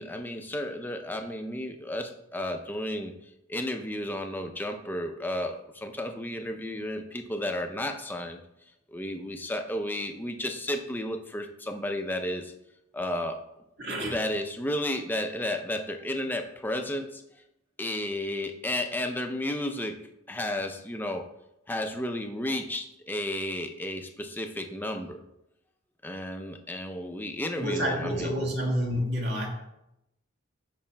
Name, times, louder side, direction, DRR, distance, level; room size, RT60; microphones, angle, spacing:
voice 1, 0.0-3.1 3.5-8.4 8.9-12.5 12.9-13.4 14.1-17.2 17.8-20.0 20.3-21.2 21.7-25.2 26.0-28.3, left 1 dB, 10° left, 5 dB, 0.5 m, -32 dB
voice 2, 13.8-14.2 27.6-29.5, equal, 55° right, -1 dB, 1.5 m, -29 dB
12.5 x 5.0 x 2.2 m, 0.86 s
head